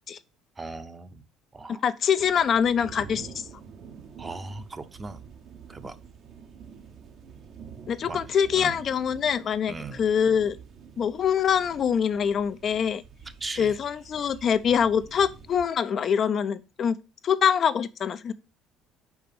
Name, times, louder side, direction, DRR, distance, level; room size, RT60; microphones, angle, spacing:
voice 1, 0.6-1.2 1.5-1.8 4.2-5.2 5.7-6.0 8.1-8.2 8.5-8.8 9.7-10.0 13.4-13.8, right 3 dB, 25° right, 0.8 m, -38 dB
voice 2, 1.8-3.4 7.9-9.7 10.0-10.6 11.0-13.0 13.6-17.0 17.2-18.3, left 7 dB, 50° left, 0.5 m, -24 dB
sound 1, 2.2-15.7, right 6 dB, 55° right, 1.0 m, -47 dB
5.0 x 4.8 x 5.2 m
hypercardioid pair, 60°, 0 cm